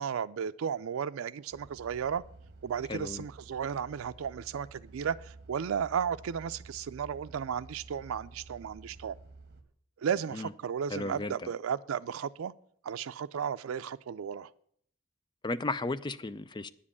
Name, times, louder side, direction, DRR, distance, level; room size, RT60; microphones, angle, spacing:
voice 1, 0.0-2.2 2.6-9.2 10.0-12.5 12.8-14.5, right 7 dB, 90° right, 0.4 m, -34 dB
sound 1, 1.5-9.6, right 3 dB, 55° right, 1.3 m, -52 dB
voice 2, 2.9-3.2 10.3-10.5 10.9-11.5 15.4-16.7, left 2 dB, 20° left, 0.4 m, -34 dB
10.0 x 7.5 x 8.4 m
head